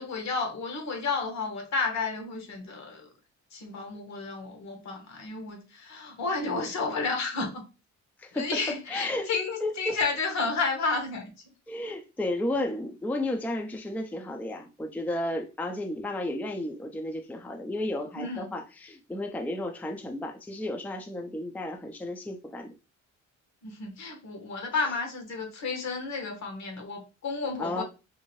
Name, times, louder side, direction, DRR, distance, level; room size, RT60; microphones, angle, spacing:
voice 1, 0.0-3.1 3.5-7.6 8.3-11.3 18.2-18.6 23.6-27.8, left 4 dB, 65° left, 1.1 m, -32 dB
voice 2, 8.2-8.5 8.9-9.3 9.6-10.0 11.7-22.7 27.6-27.8, left 1 dB, 5° left, 0.4 m, -33 dB
2.7 x 2.5 x 3.0 m
cardioid pair, 90°, 30 cm